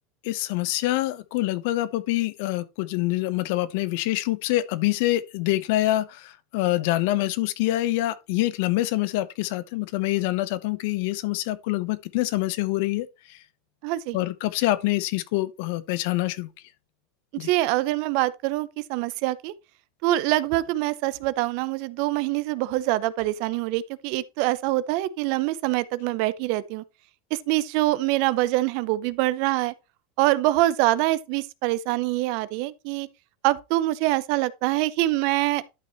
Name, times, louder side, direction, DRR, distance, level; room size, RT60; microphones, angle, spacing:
voice 1, 0.2-13.4 14.1-16.5 17.4-17.5, left 16 dB, 65° left, 0.9 m, -26 dB
voice 2, 13.8-14.2 17.3-19.5 20.0-26.8 27.3-29.7 30.2-33.1 33.4-35.6, right 17 dB, 55° right, 0.6 m, -24 dB
12.0 x 5.5 x 3.1 m
supercardioid pair, 140°, 0 cm